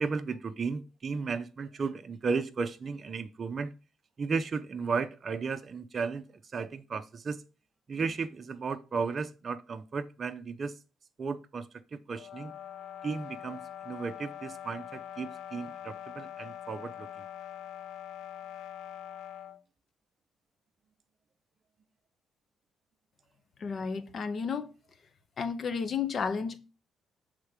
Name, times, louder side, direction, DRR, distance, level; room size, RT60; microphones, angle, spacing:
voice 1, 0.0-3.7 4.2-6.3 6.5-7.4 7.9-10.8 11.2-12.5 13.0-17.3, right 5 dB, 40° right, 0.6 m, -34 dB
sound 1, 12.1-19.6, left 10 dB, 80° left, 0.5 m, -43 dB
voice 2, 23.6-24.7 25.4-26.6, left 6 dB, 50° left, 0.8 m, -32 dB
6.4 x 3.7 x 4.8 m
cardioid pair, 85°, 0 cm